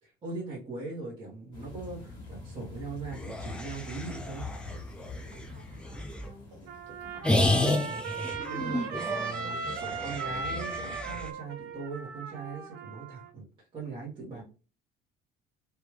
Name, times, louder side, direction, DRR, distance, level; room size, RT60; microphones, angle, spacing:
voice 1, 0.0-4.5 8.5-14.4, right 4 dB, 30° right, -8 dB, 1.4 m, -40 dB
sound 1, 1.5-10.6 11.1-11.3 11.6-11.7, left 3 dB, 25° left, 1.5 m, -46 dB
sound 2, 3.1-6.3 7.2-11.3, left 1 dB, 5° left, 0.5 m, -31 dB
voice 2, 5.3-8.6 9.1-10.5 14.3-14.4, right 1 dB, 45° right, -1 dB, 1.8 m, -50 dB
Trumpet, 6.7-13.3, right 5 dB, 65° right, 0.7 m, -37 dB
3.3 x 2.6 x 3.1 m, 0.35 s
cardioid pair, 155°, 17 cm